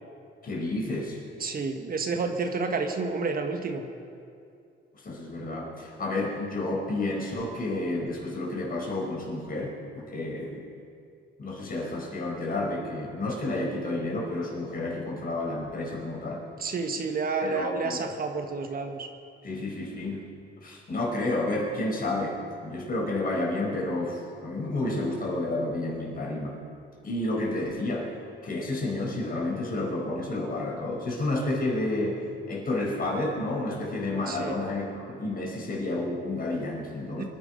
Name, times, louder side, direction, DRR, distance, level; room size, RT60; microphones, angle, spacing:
voice 1, 0.4-1.2 5.0-10.6 11.4-16.5 17.4-18.0 19.4-20.2 20.6-22.3 22.6-26.6 27.0-28.1 28.4-32.2 32.5-37.3, left 2 dB, 45° left, -2 dB, 4.9 m, -30 dB
voice 2, 1.4-3.8 16.6-19.1 34.3-34.6 37.2-37.3, right 4 dB, 50° right, 5 dB, 1.4 m, -30 dB
24.0 x 11.0 x 5.3 m, 2.4 s
cardioid pair, 90°, 20 cm